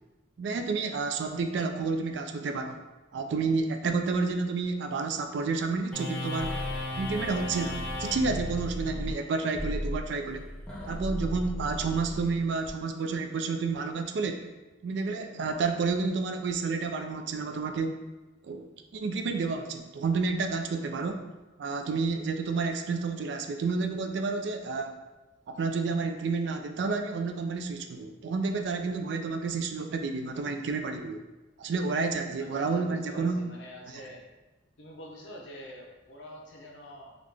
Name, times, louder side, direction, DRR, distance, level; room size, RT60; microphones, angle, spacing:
voice 1, 0.4-2.8 3.1-6.5 7.0-10.5 10.9-14.5 14.8-18.0 18.4-18.7 18.9-21.3 21.6-25.0 25.5-31.2 31.6-33.4, right 4 dB, 60° right, 6 dB, 0.3 m, -30 dB
sound 1, 5.9-12.7, left 1 dB, 5° left, 0.7 m, -35 dB
voice 2, 32.4-34.2 34.8-37.2, equal, 65° left, -1 dB, 0.7 m, -46 dB
3.6 x 2.4 x 3.2 m, 1.1 s
head